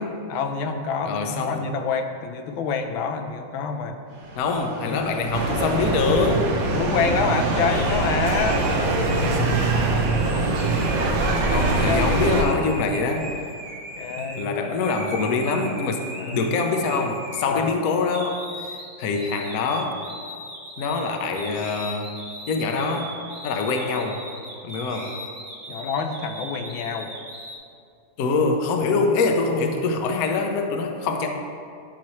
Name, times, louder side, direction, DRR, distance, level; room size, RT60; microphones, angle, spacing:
voice 1, 0.3-4.0 4.9-5.3 6.7-8.6 11.8-12.6 14.0-14.5 16.2-16.4 17.5-17.7 25.7-27.1, left 5 dB, 85° left, 6 dB, 1.4 m, -27 dB
voice 2, 1.0-1.7 4.4-6.5 11.5-13.3 14.2-20.0 20.8-22.2 22.5-23.1 23.4-24.3 24.6-25.1 28.2-31.3, left 4 dB, 65° left, 4 dB, 0.9 m, -24 dB
sound 1, 4.1-15.7, right 2 dB, 50° right, 0.9 m, -38 dB
sound 2, 5.3-12.4, right 2 dB, 75° right, 1.7 m, -23 dB
sound 3, 7.7-14.5 14.8-17.7 18.1-27.6, right 1 dB, 30° right, 1.2 m, -38 dB
11.5 x 6.0 x 3.1 m, 2.3 s
omnidirectional pair, 2.2 m